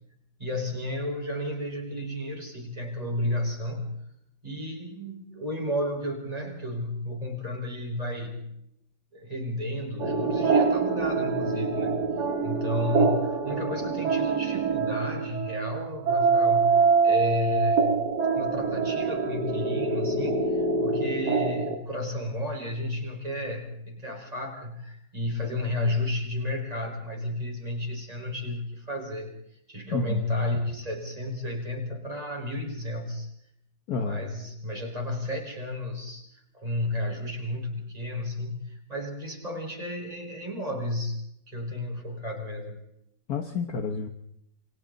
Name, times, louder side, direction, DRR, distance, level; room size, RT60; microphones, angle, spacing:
voice 1, 0.4-3.9 4.4-8.5 9.1-18.0 18.3-33.3 34.0-42.8, left 1 dB, 20° right, 1 dB, 5.5 m, -32 dB
sound 1, 10.0-21.8, right 4 dB, 60° right, 2.5 m, -25 dB
voice 2, 29.9-30.3 33.9-34.3 43.3-44.1, left 5 dB, 60° left, 6 dB, 1.7 m, -29 dB
29.0 x 23.5 x 4.1 m, 0.76 s
omnidirectional pair, 1.9 m